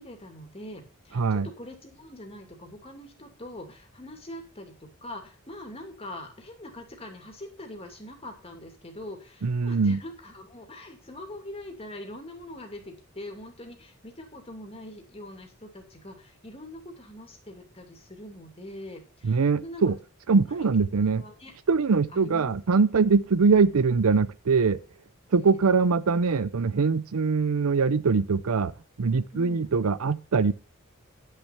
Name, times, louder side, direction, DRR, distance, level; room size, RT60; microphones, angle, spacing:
voice 1, 0.0-19.9 21.1-21.5 22.1-22.8 25.3-25.6 29.3-29.8, left 1 dB, 30° left, 2.5 m, -43 dB
voice 2, 1.1-1.5 9.4-10.0 19.2-20.0 20.3-21.2 21.7-24.8 25.3-30.5, right 4 dB, 80° right, 0.6 m, -23 dB
10.0 x 6.7 x 5.7 m
head